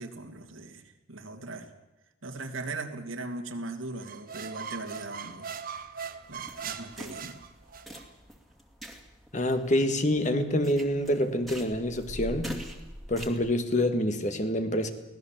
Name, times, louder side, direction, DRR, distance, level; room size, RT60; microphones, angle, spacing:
voice 1, 0.0-1.7 2.2-5.5 6.3-7.4, right 2 dB, 75° right, 5 dB, 2.5 m, -39 dB
sound 1, 4.0-8.1, right 6 dB, 45° right, 1.3 m, -40 dB
sound 2, 6.2-13.5, equal, ahead, 2.4 m, -43 dB
voice 2, 9.3-12.5 13.1-14.9, left 1 dB, 35° left, 7 dB, 1.8 m, -26 dB
24.0 x 18.0 x 7.6 m, 1.0 s
head